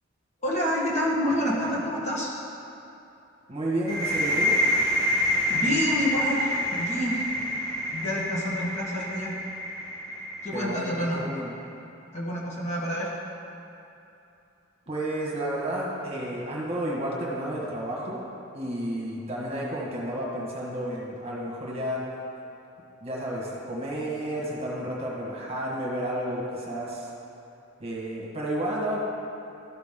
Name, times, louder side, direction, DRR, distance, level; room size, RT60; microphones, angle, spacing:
voice 1, 0.4-2.4 5.1-7.2 7.9-9.3 10.4-11.2 12.1-13.2, equal, 35° left, -5 dB, 1.5 m, -28 dB
voice 2, 3.5-4.6 10.5-11.5 14.9-22.1 23.0-27.1 27.8-29.0, right 1 dB, 30° right, -4 dB, 1.5 m, -31 dB
sound 1, 3.9-11.4, equal, 20° left, 1.4 m, -27 dB
13.0 x 6.2 x 3.7 m, 2.8 s
head